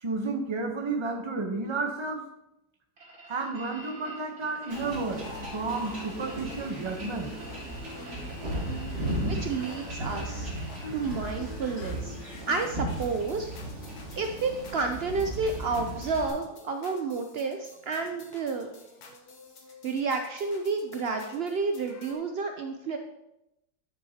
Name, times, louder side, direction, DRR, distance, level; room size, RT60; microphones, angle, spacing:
voice 1, 0.0-2.3 3.3-5.3 5.5-7.3, right 3 dB, 25° right, 3 dB, 0.6 m, -32 dB
sound 1, 3.0-11.4, right 2 dB, 65° right, 2.9 m, -48 dB
sound 2, 4.4-22.1, left 2 dB, 70° left, 1.5 m, -47 dB
Wind / Ocean / Boat Water vehicle, 4.7-16.3, right 1 dB, 45° right, 2.4 m, -36 dB
voice 2, 9.2-10.5 10.9-12.2 12.5-13.5 14.2-18.7 19.8-23.0, right 4 dB, 80° right, 5 dB, 0.5 m, -30 dB
9.9 x 6.5 x 2.8 m, 0.87 s
omnidirectional pair, 1.7 m